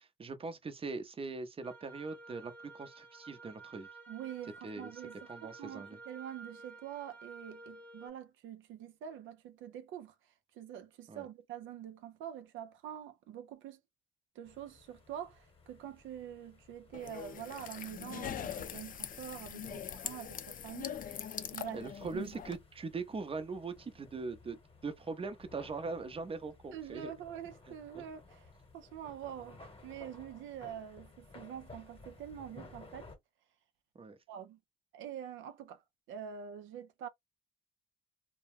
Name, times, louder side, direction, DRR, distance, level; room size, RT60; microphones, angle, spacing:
voice 1, 0.2-3.9 4.6-4.9 5.3-6.0 11.1-11.2 19.6-19.8 21.7-27.1 28.0-28.1 34.0-34.2, right 4 dB, 30° right, 0.6 m, -41 dB
sound 1, 1.6-8.1, right 3 dB, 10° left, 0.7 m, -53 dB
voice 2, 4.1-13.8 14.4-21.2 21.5-22.4 26.7-33.1 34.3-34.6 34.9-35.8 36.1-37.1, right 9 dB, 80° right, 0.4 m, -46 dB
sound 2, 14.4-33.1, left 3 dB, 25° left, 1.0 m, -57 dB
sound 3, 16.9-22.6, left 9 dB, 45° left, 0.4 m, -42 dB
2.2 x 2.1 x 3.2 m
cardioid pair, 90°, 20 cm